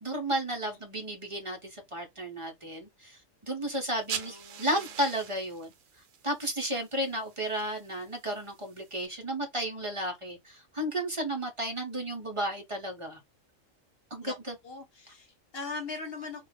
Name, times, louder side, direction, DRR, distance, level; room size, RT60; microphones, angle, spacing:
voice 1, 0.0-3.2 3.4-5.7 6.2-13.2 14.1-14.5, right 1 dB, 35° right, 0.5 m, -33 dB
sound 1, 3.9-9.1, right 8 dB, 80° right, 0.9 m, -44 dB
voice 2, 4.1-4.9 14.2-14.4 14.6-16.5, left 3 dB, 55° left, 1.0 m, -41 dB
2.4 x 2.2 x 3.3 m
omnidirectional pair, 1.3 m